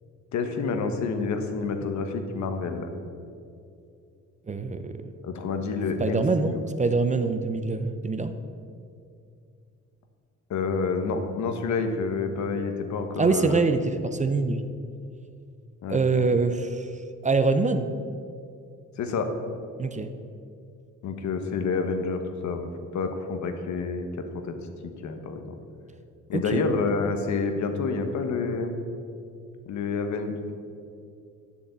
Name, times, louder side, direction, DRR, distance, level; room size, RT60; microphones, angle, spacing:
voice 1, 0.3-2.9 5.2-6.6 10.5-13.6 15.8-16.0 19.0-19.3 21.0-24.2 25.0-25.4 26.3-28.8 29.7-30.5, left 4 dB, 65° left, 6 dB, 1.2 m, -28 dB
voice 2, 4.5-5.0 6.0-8.3 13.2-14.6 15.9-16.9 17.2-17.9 19.8-20.1 26.3-26.7, right 3 dB, 25° right, 9 dB, 0.6 m, -24 dB
7.2 x 7.1 x 8.0 m, 2.4 s
cardioid pair, 90°, 30 cm